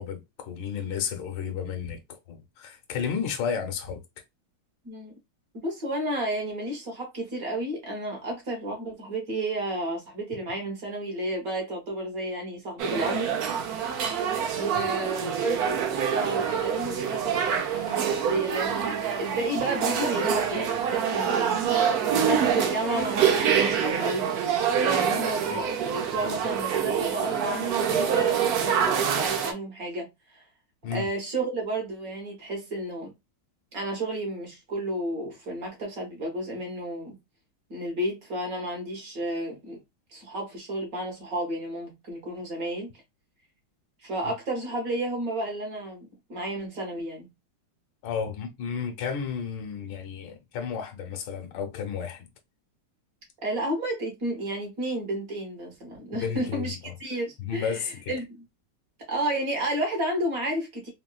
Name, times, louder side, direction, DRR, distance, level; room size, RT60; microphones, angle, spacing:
voice 1, 0.0-4.0 30.8-31.1 48.0-52.3 56.1-56.9 57.4-58.1, left 7 dB, 70° left, 1.3 m, -32 dB
voice 2, 4.8-5.1 5.5-13.3 14.6-21.8 22.2-24.3 24.8-30.4 30.9-33.1 33.7-37.2 37.7-39.8 40.1-42.9 44.0-47.3 53.4-58.4 59.1-60.9, right 1 dB, 50° right, 1.4 m, -32 dB
sound 1, 12.8-29.5, right 8 dB, 75° right, 0.8 m, -26 dB
3.6 x 2.2 x 2.2 m
omnidirectional pair, 2.3 m